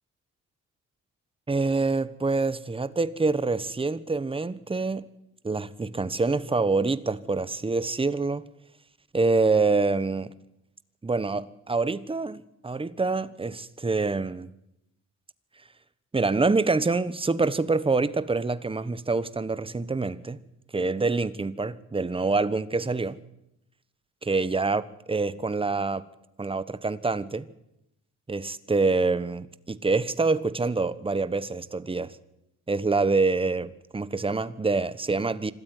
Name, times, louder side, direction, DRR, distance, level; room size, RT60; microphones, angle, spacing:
voice 1, 1.5-5.0 5.4-8.4 9.1-10.3 11.0-14.5 16.1-20.4 20.7-23.2 24.2-26.0 26.4-27.5 28.3-32.1 32.7-35.5, right 3 dB, 20° right, 15 dB, 1.2 m, -26 dB
25.5 x 13.5 x 9.6 m, 0.86 s
cardioid pair, 90°, 30 cm